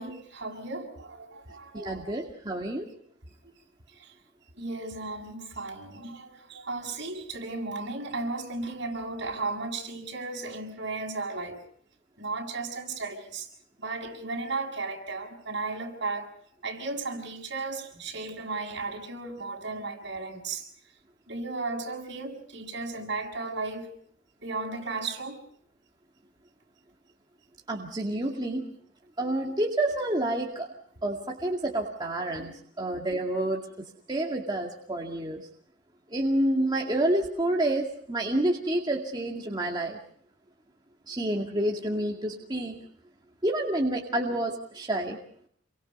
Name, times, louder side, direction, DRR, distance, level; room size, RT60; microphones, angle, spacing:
voice 1, 0.0-2.2 4.0-4.1 4.6-11.6 12.2-13.5 13.8-16.3 16.6-20.7 21.3-23.9 24.4-25.4 32.4-32.6, right 3 dB, 60° right, 6.9 m, -35 dB
voice 2, 1.7-2.9 27.7-28.7 29.2-30.7 31.0-33.6 34.1-35.4 36.1-40.0 41.1-42.8 43.4-45.2, right 1 dB, 20° right, 2.2 m, -28 dB
28.5 x 24.5 x 5.4 m
head